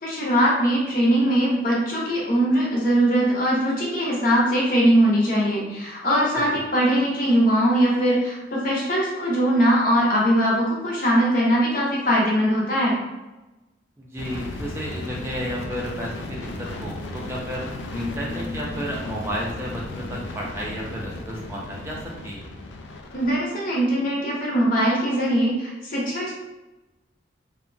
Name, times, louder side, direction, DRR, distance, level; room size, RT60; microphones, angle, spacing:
voice 1, 0.0-13.0 23.1-26.3, equal, 50° left, -4 dB, 0.7 m, -21 dB
voice 2, 14.0-17.6 17.9-22.4, equal, 15° right, -4 dB, 0.3 m, -32 dB
sound 1, 14.2-23.4, left 2 dB, 85° left, 0.4 m, -35 dB
sound 2, 16.5-17.5 17.8-20.8, left 3 dB, 15° left, 0.8 m, -39 dB
2.7 x 2.1 x 2.5 m, 1.0 s
head